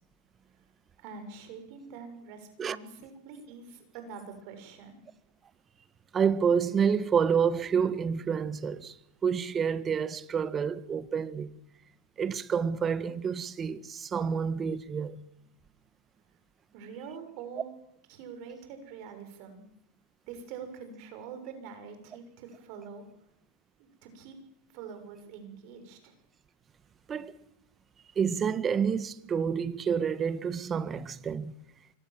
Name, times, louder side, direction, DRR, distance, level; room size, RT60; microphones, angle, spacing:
voice 1, 1.0-5.0 16.7-17.7 18.1-19.7 20.2-23.0 23.8-24.4 24.7-26.2, right 6 dB, 55° right, 6.6 m, -45 dB
voice 2, 6.1-8.9 9.2-11.5 12.2-15.2 27.1-27.3 28.1-31.5, right 6 dB, 25° right, 1.5 m, -28 dB
25.0 x 23.0 x 7.7 m
hypercardioid pair, 105°, 0 cm